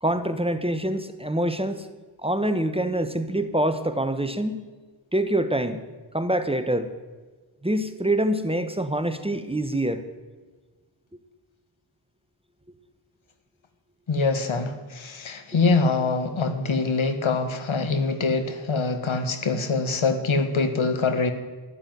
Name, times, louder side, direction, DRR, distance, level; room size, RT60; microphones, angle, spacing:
voice 1, 0.0-1.9 2.2-4.6 5.1-5.8 6.1-6.9 7.6-10.0, right 1 dB, 10° right, 9 dB, 1.3 m, -25 dB
voice 2, 14.1-21.3, left 3 dB, 70° left, 9 dB, 1.8 m, -24 dB
13.0 x 11.5 x 9.5 m, 1.3 s
wide cardioid pair, 65°, 49 cm